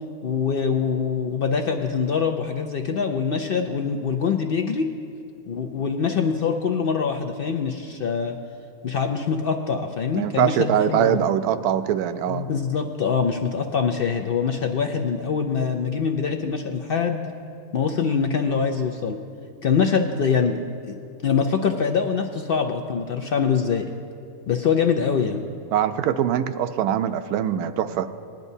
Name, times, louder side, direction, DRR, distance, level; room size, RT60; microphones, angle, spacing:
voice 1, 0.2-4.9 5.5-8.4 8.8-11.3 12.3-17.2 17.7-19.2 19.6-20.9 21.2-23.9 24.5-25.4, left 6 dB, 70° left, 4 dB, 0.5 m, -24 dB
voice 2, 10.1-12.5 25.7-28.1, right 10 dB, 85° right, 10 dB, 1.1 m, -22 dB
19.5 x 10.5 x 2.7 m, 2.5 s
omnidirectional pair, 1.6 m